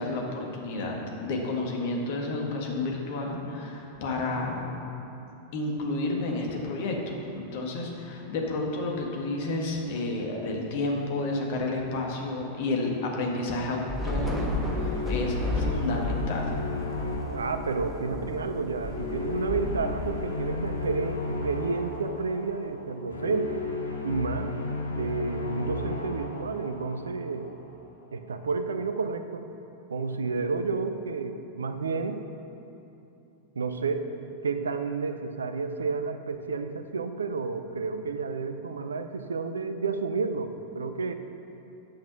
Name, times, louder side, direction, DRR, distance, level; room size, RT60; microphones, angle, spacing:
voice 1, 0.0-4.7 5.5-16.5, left 2 dB, 50° left, 0 dB, 1.6 m, -31 dB
Thunder / Rain, 13.9-21.4, left 1 dB, 15° right, 1.3 m, -33 dB
sound 1, 14.6-27.7, left 3 dB, 80° left, 1.0 m, -34 dB
voice 2, 17.3-23.7 24.0-24.5 24.9-27.6 28.1-29.4 29.9-32.2 33.6-34.1 34.4-41.1, right 4 dB, 70° right, 9 dB, 0.5 m, -31 dB
8.5 x 6.1 x 6.4 m, 2.9 s
figure-of-eight pair, 90°, 0 cm